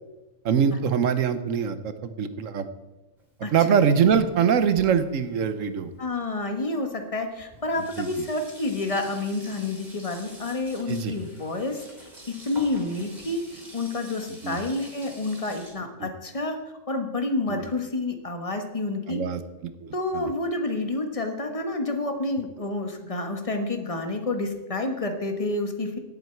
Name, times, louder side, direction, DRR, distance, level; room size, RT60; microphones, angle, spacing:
voice 1, 0.4-2.7 3.4-5.9 8.0-8.3 10.9-11.1 14.4-14.6 16.0-16.1 17.5-17.7 19.1-20.3, right 7 dB, 80° right, 11 dB, 1.2 m, -24 dB
Sink (filling or washing), 3.2-6.3 7.1-7.2 7.4-15.7, equal, 30° right, 3.5 m, -47 dB
voice 2, 6.0-13.4 13.7-16.6 16.9-19.2 19.9-26.0, left 2 dB, 25° left, 5 dB, 1.4 m, -29 dB
17.5 x 8.0 x 4.6 m, 1.1 s
omnidirectional pair, 1.3 m